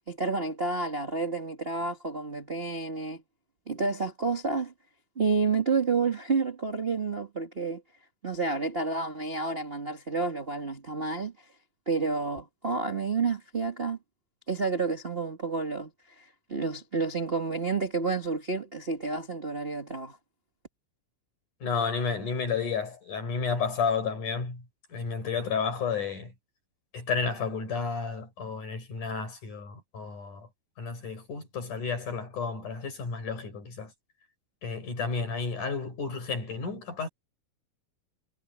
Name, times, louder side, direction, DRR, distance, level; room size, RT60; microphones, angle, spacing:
voice 1, 0.1-3.2 3.7-4.7 5.1-7.8 8.2-11.3 11.8-14.0 14.5-15.9 16.2-20.2, right 4 dB, 40° right, 0.8 m, -30 dB
voice 2, 21.6-26.3 26.9-30.5 30.8-33.9 34.6-37.1, left 5 dB, 55° left, 7.6 m, -32 dB
omnidirectional pair, 4.4 m